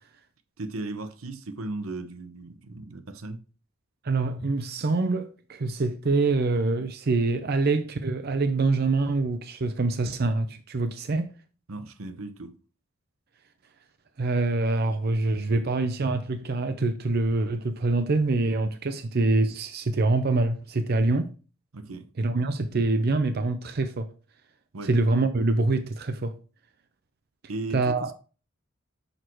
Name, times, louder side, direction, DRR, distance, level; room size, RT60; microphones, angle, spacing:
voice 1, 0.6-3.4 11.7-12.5 21.7-22.1 24.7-24.9 27.5-28.1, right 2 dB, 80° right, 0.8 m, -36 dB
voice 2, 4.0-11.3 14.2-21.3 22.2-24.1 24.8-26.3 27.7-28.1, right 3 dB, 45° right, 0.5 m, -25 dB
6.5 x 4.6 x 4.5 m
head